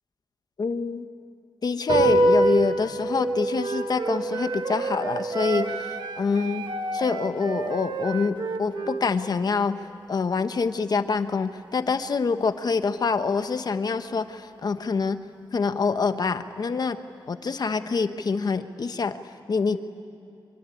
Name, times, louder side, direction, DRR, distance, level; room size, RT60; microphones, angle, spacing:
voice 1, 0.6-1.1 1.6-9.8 10.1-15.2 15.5-17.0 17.3-19.2 19.5-19.8, left 4 dB, 50° left, 9 dB, 1.2 m, -26 dB
sound 1, 1.9-8.6, right 2 dB, 85° right, 5.4 m, -27 dB
Wind instrument woodwind instrument, 3.6-9.1, right 4 dB, 70° right, 1.7 m, -32 dB
24.5 x 24.0 x 10.0 m, 2.7 s
wide cardioid pair, 100°, 8 cm